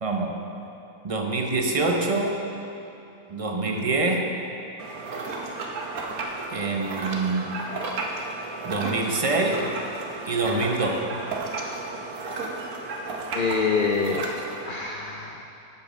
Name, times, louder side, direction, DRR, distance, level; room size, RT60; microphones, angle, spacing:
voice 1, 0.0-0.4 1.0-2.4 3.3-4.3 6.5-7.5 8.6-9.7 10.2-11.0, right 3 dB, 40° right, 2 dB, 0.4 m, -25 dB
sound 1, 4.8-14.7, right 3 dB, 70° right, 1.3 m, -33 dB
voice 2, 13.3-14.2 14.6-15.4, left 5 dB, 80° left, 1 dB, 0.4 m, -27 dB
13.0 x 5.4 x 5.1 m, 2.8 s
omnidirectional pair, 1.6 m